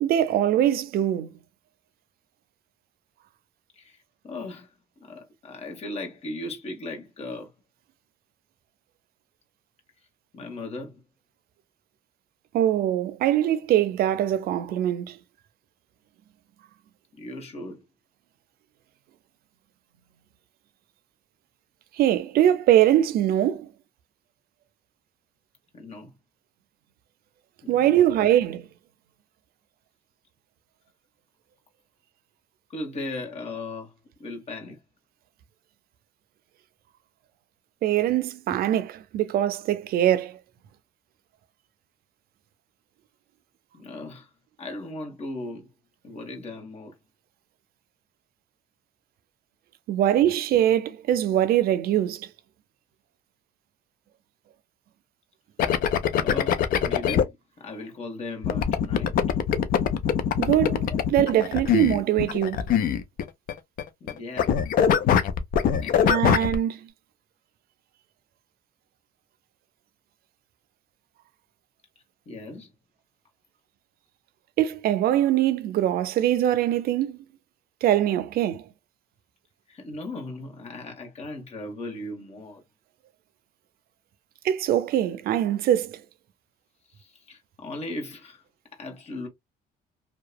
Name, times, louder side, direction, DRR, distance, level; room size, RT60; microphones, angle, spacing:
voice 1, 0.0-1.3 12.5-15.2 22.0-23.7 27.7-28.6 37.8-40.4 49.9-52.3 60.4-62.7 66.1-66.9 74.6-77.2 77.8-78.7 84.4-86.0, right 11 dB, 65° right, 0.5 m, -22 dB
voice 2, 4.2-7.5 10.3-11.0 17.2-17.8 25.7-26.1 27.6-28.3 32.7-33.9 34.2-34.8 38.5-38.6 43.7-44.3 44.6-45.7 46.0-46.9 56.2-59.1 64.0-64.6 65.8-66.2 72.3-72.7 79.7-82.6 86.9-88.4 88.7-89.3, left 2 dB, 40° left, 1.3 m, -37 dB
sound 1, 55.6-57.2 58.4-63.5 63.8-64.1 64.4-66.6, left 8 dB, 60° left, 0.5 m, -22 dB
2.8 x 2.3 x 2.2 m
cardioid pair, 110°, 17 cm